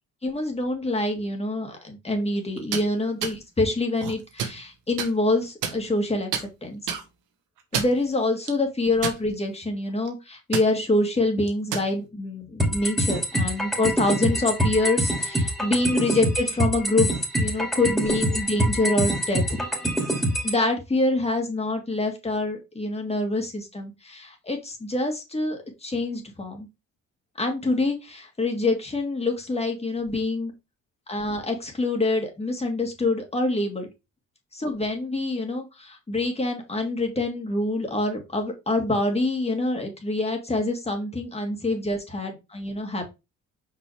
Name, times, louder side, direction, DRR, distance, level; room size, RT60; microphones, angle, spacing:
voice 1, 0.2-6.3 6.6-6.8 7.7-17.1 17.4-19.6 20.4-26.7 27.4-30.5 31.1-33.9 34.5-43.0, left 2 dB, 20° left, 3 dB, 2.2 m, -26 dB
sound 1, 2.6-2.9 3.2-3.4 3.9-4.6 5.0-5.1 5.6-6.0 6.3-6.4 6.9-7.0 7.6-8.0 8.5-8.6 9.0-9.5 9.9-10.1 10.5-10.7 11.5-11.9, right 8 dB, 90° right, 1.3 m, -29 dB
sound 2, 12.6-20.6, equal, ahead, 2.5 m, -25 dB
5.5 x 5.1 x 3.4 m, 0.25 s
cardioid pair, 90°, 30 cm